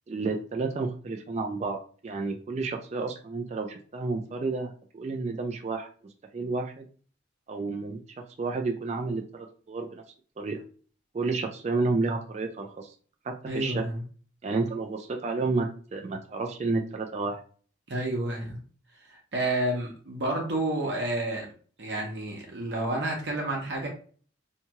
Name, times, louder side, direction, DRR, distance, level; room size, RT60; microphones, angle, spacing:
voice 1, 0.1-1.8 2.0-5.9 6.3-6.9 7.5-10.0 10.4-10.6 11.1-12.9 13.2-13.8 14.4-17.4, right 3 dB, 35° right, 3 dB, 0.3 m, -31 dB
voice 2, 13.5-14.0 17.9-18.6 19.3-21.5 21.8-23.9, right 1 dB, 60° right, -1 dB, 0.8 m, -30 dB
2.8 x 2.3 x 2.8 m, 0.42 s
head